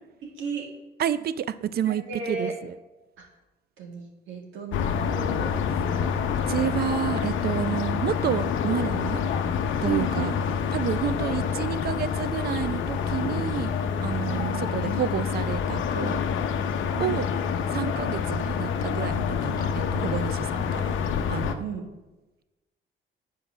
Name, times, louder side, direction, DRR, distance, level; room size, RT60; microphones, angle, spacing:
voice 1, 0.2-0.7 1.8-2.5 3.2-3.3 3.8-5.6 9.8-10.4 14.3-14.6 16.9-17.2 21.6-21.8, right 5 dB, 80° right, 0 dB, 1.9 m, -34 dB
voice 2, 1.0-2.7 6.5-9.2 9.8-10.3 10.7-13.7 14.0-16.2 17.0-17.3 17.7-19.6 19.9-20.9 21.3-21.6, right 10 dB, 50° right, 16 dB, 0.4 m, -30 dB
sound 1, 4.7-21.5, left 7 dB, 80° left, 0.7 m, -27 dB
8.0 x 4.7 x 6.0 m, 1.1 s
cardioid pair, 90°, 20 cm